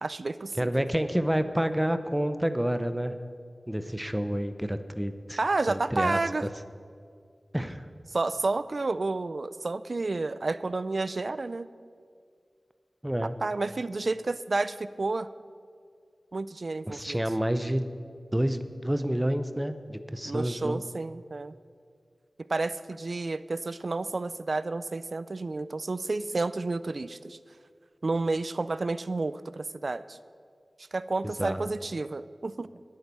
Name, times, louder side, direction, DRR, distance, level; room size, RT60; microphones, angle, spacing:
voice 1, 0.0-0.7 5.4-6.5 8.1-11.7 13.2-15.3 16.3-17.2 20.2-21.5 22.4-27.4 28.0-30.2 30.9-32.7, right 3 dB, 60° right, 15 dB, 0.4 m, -30 dB
voice 2, 0.6-3.1 3.7-5.4 5.7-6.5 7.5-7.9 13.0-13.3 16.9-17.9 18.3-20.8 31.2-31.6, equal, 10° right, 10 dB, 0.6 m, -29 dB
10.5 x 9.4 x 6.8 m, 2.2 s
wide cardioid pair, 55°, 0 cm